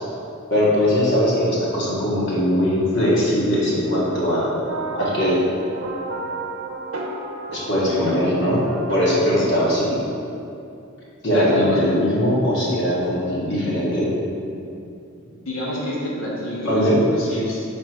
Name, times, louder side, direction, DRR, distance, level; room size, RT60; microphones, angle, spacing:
voice 1, 0.5-4.5 5.0-5.4 7.5-10.0 11.2-14.1 16.6-17.0, equal, 55° left, -7 dB, 1.5 m, -20 dB
sound 1, 4.7-9.8, right 2 dB, 90° right, 0.7 m, -32 dB
voice 2, 11.3-11.8 15.2-17.6, left 1 dB, 75° left, -5 dB, 1.3 m, -29 dB
4.4 x 4.2 x 5.2 m, 2.6 s
head